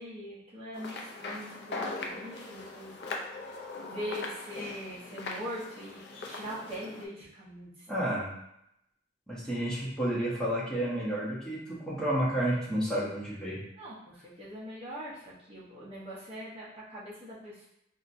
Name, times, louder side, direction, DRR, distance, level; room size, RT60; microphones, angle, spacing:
voice 1, 0.0-7.9 13.7-17.7, equal, 30° right, -7 dB, 0.8 m, -42 dB
sound 1, 0.7-7.1, left 3 dB, 60° left, 0.4 m, -40 dB
voice 2, 7.9-8.3 9.3-13.6, right 1 dB, 5° left, -7 dB, 0.8 m, -31 dB
4.2 x 2.1 x 2.5 m, 0.79 s
head